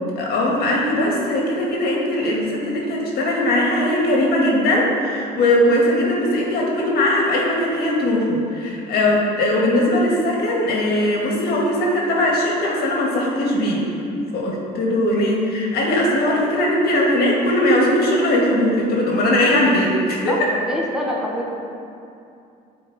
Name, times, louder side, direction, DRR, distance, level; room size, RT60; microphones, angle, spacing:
voice 1, 0.2-13.8 14.3-20.3, left 1 dB, 65° left, -3 dB, 2.3 m, -19 dB
voice 2, 20.3-21.5, equal, 5° right, -3 dB, 1.4 m, -26 dB
14.0 x 5.1 x 4.4 m, 2.6 s
cardioid pair, 110°, 17 cm